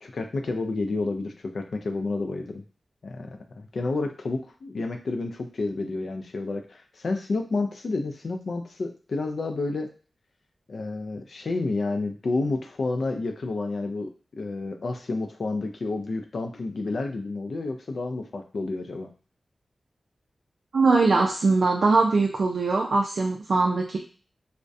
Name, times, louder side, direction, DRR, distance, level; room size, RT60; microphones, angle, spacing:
voice 1, 0.0-2.6 3.0-9.9 10.7-19.1, left 3 dB, 70° left, 6 dB, 0.4 m, -30 dB
voice 2, 20.7-24.0, right 3 dB, 70° right, 0 dB, 0.3 m, -21 dB
2.3 x 2.1 x 2.5 m, 0.39 s
wide cardioid pair, 105°, 0 cm